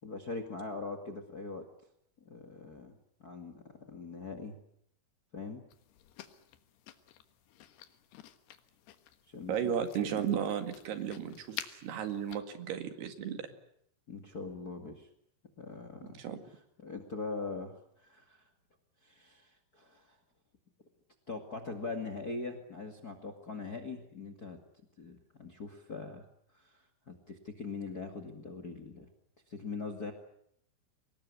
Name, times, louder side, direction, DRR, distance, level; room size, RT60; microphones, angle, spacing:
voice 1, 0.0-1.7 2.2-4.6 5.3-5.6 9.3-9.6 10.1-10.3 14.1-15.1 15.6-16.2 16.8-18.4 19.0-20.2 21.3-24.6 25.0-26.3 26.5-29.1 29.5-30.1, left 3 dB, 35° left, 6 dB, 1.7 m, -42 dB
sound 1, 5.7-12.4, left 12 dB, 80° left, 3.5 m, -50 dB
voice 2, 9.5-13.5 16.0-16.4, right 8 dB, 80° right, 8 dB, 4.1 m, -34 dB
24.5 x 20.5 x 9.7 m, 0.71 s
omnidirectional pair, 4.7 m